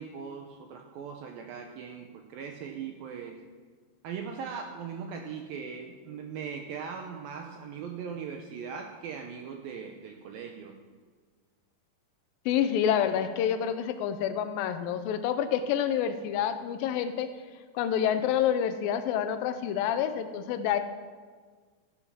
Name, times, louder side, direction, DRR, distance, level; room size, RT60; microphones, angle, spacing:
voice 1, 0.0-3.4 4.0-10.7, right 6 dB, 75° right, 3 dB, 2.2 m, -39 dB
voice 2, 12.5-17.3 17.8-20.8, left 9 dB, 85° left, 9 dB, 2.0 m, -28 dB
15.0 x 8.1 x 6.0 m, 1.5 s
omnidirectional pair, 5.0 m